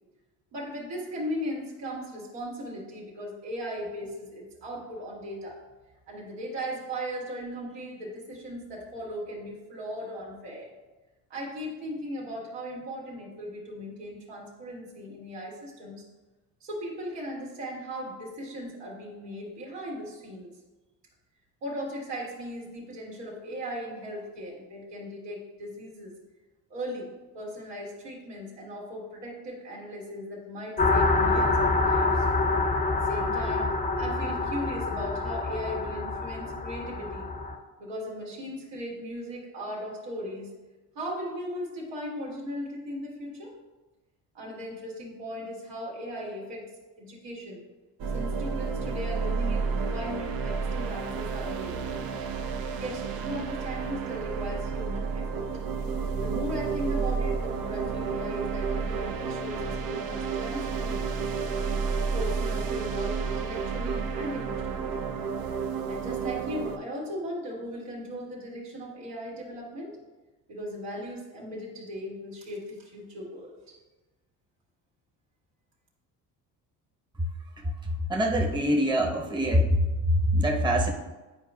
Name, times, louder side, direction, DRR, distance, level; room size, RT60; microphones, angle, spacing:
voice 1, 0.5-5.6 6.1-10.7 11.3-16.0 16.6-20.5 21.6-26.1 26.7-32.3 32.9-33.7 34.0-37.3 37.8-40.5 41.0-43.5 44.3-46.7 47.0-47.6 48.1-52.1 52.8-55.5 56.2-61.4 62.1-64.9 65.9-70.0 70.5-73.7, equal, 80° right, -4 dB, 2.0 m, -37 dB
sound 1, 30.8-37.6, left 3 dB, 20° left, 0.8 m, -26 dB
sound 2, 48.0-66.8, right 5 dB, 60° right, 0.7 m, -31 dB
voice 2, 78.1-80.9, equal, 10° right, 0 dB, 0.9 m, -24 dB
9.7 x 4.5 x 2.3 m, 1.2 s
supercardioid pair, 70°, 41 cm